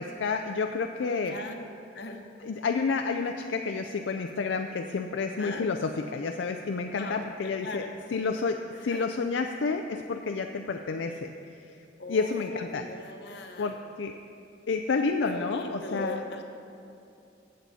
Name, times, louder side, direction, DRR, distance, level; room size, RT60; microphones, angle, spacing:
voice 1, 0.0-1.4 2.4-7.8 8.1-11.3 12.1-12.9 13.6-14.1 14.7-16.2, left 4 dB, 85° left, 5 dB, 0.4 m, -30 dB
voice 2, 1.2-1.6 1.9-2.2 5.4-5.7 6.9-7.9 8.7-9.1 12.0-13.9 15.3-16.4, left 2 dB, 65° left, 4 dB, 1.0 m, -39 dB
15.0 x 7.6 x 4.2 m, 2.7 s
head